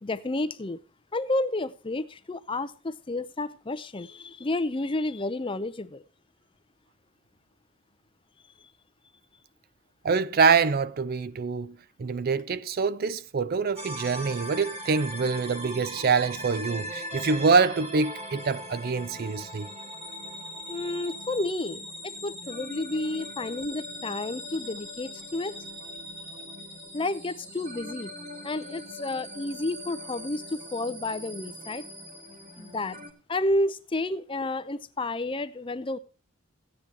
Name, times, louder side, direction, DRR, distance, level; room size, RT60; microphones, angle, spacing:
voice 1, 0.0-0.8 1.1-6.0 8.6-8.7 20.7-25.5 26.9-28.1 28.4-31.8 32.6-33.0 33.3-36.0, left 2 dB, 25° left, 0.5 m, -31 dB
voice 2, 10.0-19.7, right 5 dB, 45° right, 0.4 m, -25 dB
sound 1, 13.8-33.1, equal, 30° right, 2.1 m, -40 dB
15.0 x 9.6 x 2.9 m
head